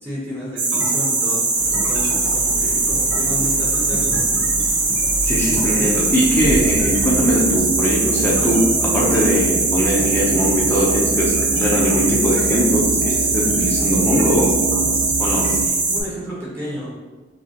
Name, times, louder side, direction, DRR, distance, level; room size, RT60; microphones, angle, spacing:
voice 1, 0.0-1.4 1.7-4.2 15.4-16.9, equal, 15° right, -7 dB, 0.9 m, -31 dB
sound 1, 0.6-16.0, right 3 dB, 80° right, 0.8 m, -21 dB
Idling, 1.5-7.6, equal, 90° left, 0.6 m, -31 dB
voice 2, 5.2-14.5 15.2-15.5, equal, 10° left, -5 dB, 0.6 m, -20 dB
sound 2, 6.4-15.7, right 5 dB, 30° right, 0.3 m, -27 dB
5.1 x 2.4 x 2.9 m, 1.3 s
head